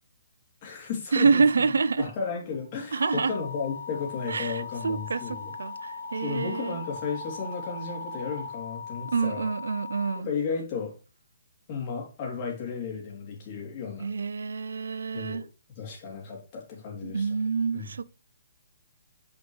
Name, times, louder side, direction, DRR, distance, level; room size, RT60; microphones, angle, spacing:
voice 1, 0.6-1.4 2.0-5.5 6.2-9.5 10.1-10.9 11.7-14.1 15.1-15.4 15.7-17.3 17.7-17.9, left 5 dB, 30° left, 2.9 m, -34 dB
voice 2, 1.1-2.0 2.9-3.3 4.3-6.8 9.1-10.3 14.0-15.4 17.0-18.0, right 5 dB, 80° right, 0.5 m, -27 dB
sound 1, 2.3-8.5, right 8 dB, 55° right, 2.7 m, -45 dB
sound 2, 3.0-10.2, left 6 dB, 70° left, 0.6 m, -39 dB
8.5 x 5.2 x 3.2 m
hypercardioid pair, 155°, 0 cm